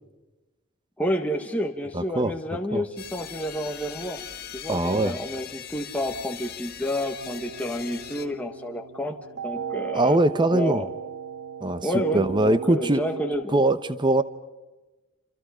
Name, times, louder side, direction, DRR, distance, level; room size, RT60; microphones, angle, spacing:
voice 1, 1.0-4.2 4.5-10.2 10.5-10.9 11.8-13.6, equal, 5° left, 2 dB, 1.6 m, -30 dB
voice 2, 1.9-2.3 2.7-2.8 4.7-5.2 9.9-10.9 11.6-11.9 12.1-13.0 13.5-14.2, right 1 dB, 25° right, 13 dB, 0.9 m, -22 dB
sound 1, 3.0-8.3, left 9 dB, 50° left, 1.8 m, -40 dB
sound 2, 7.2-13.3, right 7 dB, 55° right, 1.6 m, -35 dB
29.0 x 27.5 x 5.1 m, 1.1 s
head